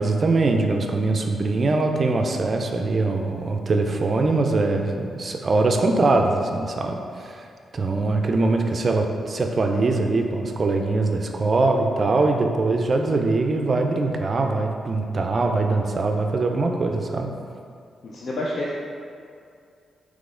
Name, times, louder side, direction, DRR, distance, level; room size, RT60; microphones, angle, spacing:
voice 1, 0.0-7.5 7.7-17.3, right 3 dB, 40° right, 3 dB, 0.4 m, -22 dB
voice 2, 18.0-18.8, left 1 dB, 55° left, -5 dB, 0.5 m, -28 dB
3.9 x 3.1 x 3.7 m, 2.3 s
cardioid pair, 115°, 0 cm